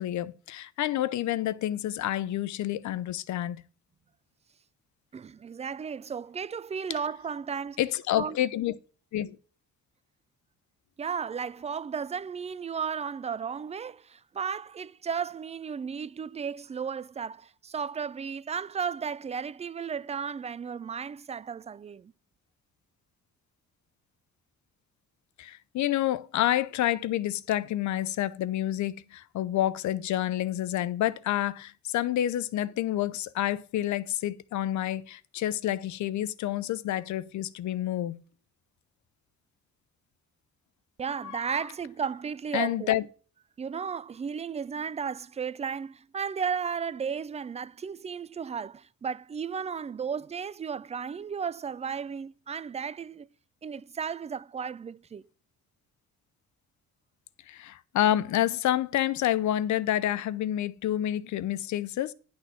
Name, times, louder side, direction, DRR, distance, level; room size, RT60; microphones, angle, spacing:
voice 1, 0.0-3.6 7.8-8.7 9.1-9.4 25.4-38.2 42.5-43.0 57.5-62.1, left 13 dB, 70° left, 0.7 m, -28 dB
voice 2, 5.1-7.8 8.1-8.4 11.0-22.1 41.0-43.0 43.6-53.3 53.6-55.2, right 6 dB, 25° right, 0.3 m, -34 dB
10.5 x 4.3 x 6.9 m
cardioid pair, 90°, 30 cm